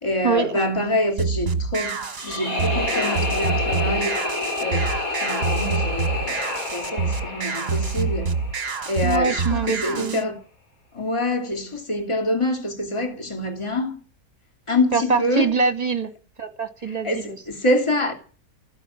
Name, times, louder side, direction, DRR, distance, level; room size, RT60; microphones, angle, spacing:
voice 1, 0.0-4.2 4.6-8.3 8.9-10.4 10.9-14.0 14.7-15.5 16.9-18.1, left 1 dB, 20° left, 2.7 m, -26 dB
sound 1, 1.2-10.2, right 4 dB, 40° right, 1.5 m, -27 dB
sound 2, 2.2-9.1, left 3 dB, 60° left, 3.8 m, -28 dB
voice 2, 9.0-10.2 14.9-16.1 16.4-17.4, right 5 dB, 25° right, 1.9 m, -24 dB
14.5 x 9.9 x 8.6 m
omnidirectional pair, 1.6 m